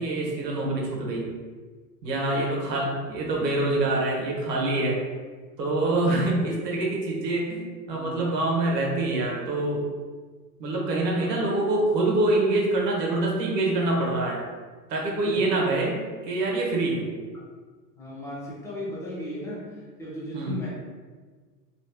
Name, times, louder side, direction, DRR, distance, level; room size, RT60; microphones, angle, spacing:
voice 1, 0.0-1.3 2.0-5.0 5.6-9.8 10.6-14.4 14.9-16.0 16.2-17.1 20.3-20.6, right 2 dB, 75° right, -2 dB, 1.2 m, -25 dB
voice 2, 2.1-2.8 6.4-6.6 7.9-8.3 10.9-11.5 15.2-15.7 17.3-17.5 17.9-20.7, left 1 dB, 5° left, -7 dB, 1.1 m, -36 dB
3.2 x 2.6 x 2.9 m, 1.4 s
hypercardioid pair, 110°, 48 cm